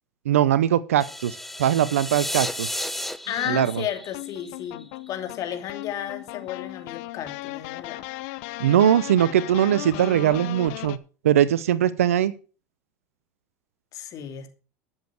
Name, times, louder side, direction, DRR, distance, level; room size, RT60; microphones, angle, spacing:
voice 1, 0.3-2.7 3.5-3.8 8.6-11.0 11.2-12.3, right 10 dB, 85° right, 0.6 m, -21 dB
sound 1, 1.0-5.1, left 1 dB, 5° left, 0.8 m, -33 dB
sound 2, 3.3-11.0, left 19 dB, 70° left, 0.7 m, -37 dB
voice 2, 3.3-8.0 13.9-14.5, left 10 dB, 50° left, 2.8 m, -33 dB
12.5 x 7.3 x 6.4 m
hypercardioid pair, 85°, 7 cm